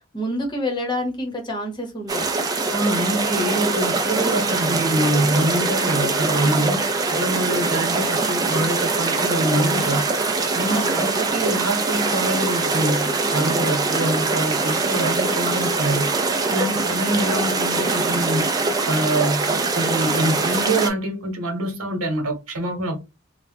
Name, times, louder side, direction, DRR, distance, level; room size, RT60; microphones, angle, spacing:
voice 1, 0.0-2.3 10.6-11.0 16.6-16.9, left 1 dB, 20° left, 0.8 m, -28 dB
sound 1, 2.1-20.9, right 3 dB, 20° right, 0.3 m, -23 dB
voice 2, 2.7-6.8 7.1-10.0 10.5-16.2 16.5-18.5 18.9-23.0, right 1 dB, 90° right, 1.0 m, -25 dB
2.8 x 2.0 x 3.4 m
head